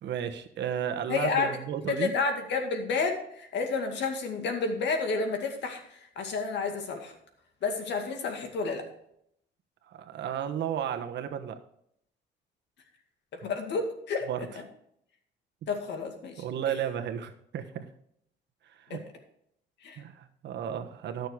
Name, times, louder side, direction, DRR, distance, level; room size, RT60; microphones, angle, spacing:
voice 1, 0.0-2.1 9.9-11.6 14.3-14.5 16.4-17.9 18.7-19.0 20.0-21.3, right 9 dB, 70° right, 7 dB, 1.2 m, -33 dB
voice 2, 1.1-1.5 1.9-7.2 7.6-8.9 13.3-14.3 15.7-16.4 18.9-19.0 19.8-20.0, left 4 dB, 70° left, 4 dB, 2.2 m, -30 dB
13.0 x 6.6 x 4.6 m, 0.72 s
cardioid pair, 115°, 19 cm